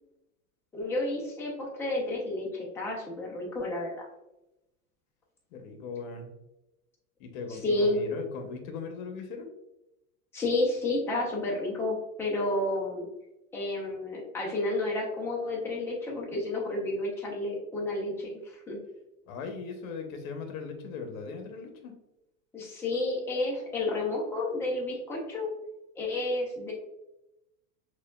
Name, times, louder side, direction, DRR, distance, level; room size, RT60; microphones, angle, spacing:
voice 1, 0.7-4.1 7.5-8.0 10.3-13.1 13.5-18.8 22.5-25.5 26.0-26.7, left 2 dB, 5° left, -3 dB, 0.4 m, -31 dB
voice 2, 5.5-6.3 7.2-9.5 19.3-21.9, left 4 dB, 65° left, 5 dB, 0.9 m, -39 dB
6.1 x 2.3 x 2.2 m, 0.93 s
supercardioid pair, 145°, 44 cm